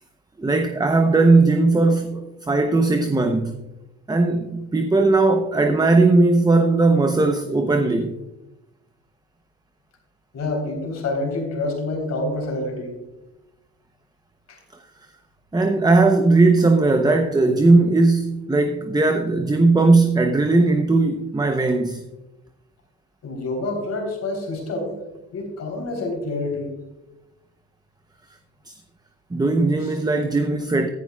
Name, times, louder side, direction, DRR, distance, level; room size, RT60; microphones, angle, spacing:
voice 1, 0.4-3.6 4.1-8.1 15.5-22.0 28.7-28.8 29.3-30.9, right 3 dB, 15° right, 0.7 m, -18 dB
voice 2, 10.3-12.9 14.5-14.6 23.2-24.9 25.3-26.7 29.8-29.9, left 2 dB, 60° left, 3.4 m, -27 dB
14.5 x 10.5 x 2.3 m
cardioid pair, 90°, 30 cm